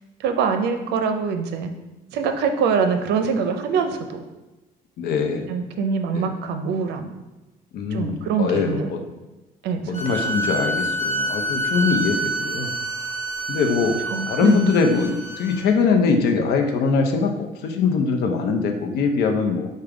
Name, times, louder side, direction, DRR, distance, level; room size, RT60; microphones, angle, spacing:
voice 1, 0.2-1.7 2.1-4.2 5.5-7.1 7.9-8.9 9.6-10.1 14.1-14.6, right 5 dB, 80° right, 7 dB, 0.5 m, -24 dB
voice 2, 5.0-5.5 6.1-6.3 7.7-9.0 10.0-12.7 13.5-14.0 14.3-19.7, left 5 dB, 70° left, 4 dB, 0.6 m, -22 dB
sound 1, 9.9-15.6, right 1 dB, 45° left, 1.3 m, -27 dB
5.1 x 2.2 x 4.7 m, 1.1 s
cardioid pair, 110°, 17 cm